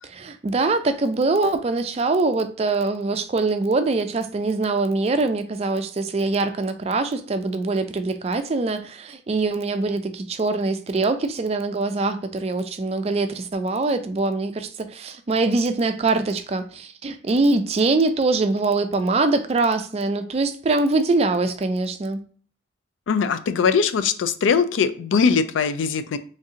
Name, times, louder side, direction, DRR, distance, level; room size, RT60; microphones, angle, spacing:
voice 1, 0.0-22.2, right 3 dB, 35° right, 0.3 m, -23 dB
voice 2, 23.1-26.2, left 6 dB, 90° left, 0.3 m, -21 dB
3.2 x 2.8 x 3.7 m
head